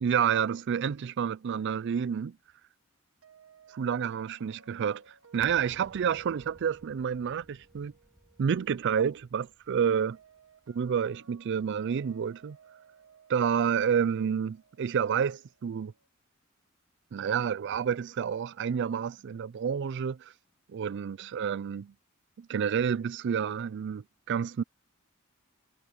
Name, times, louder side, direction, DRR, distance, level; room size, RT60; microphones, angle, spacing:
voice 1, 0.0-2.4 3.7-7.9 8.4-10.2 10.7-12.6 13.3-15.9 17.1-20.3 20.7-21.9 22.4-24.6, right 7 dB, 55° right, 0.4 m, -29 dB
sound 1, 3.2-16.1, right 6 dB, 80° right, 1.3 m, -60 dB
sound 2, 5.3-11.5, equal, 5° left, 1.6 m, -59 dB
head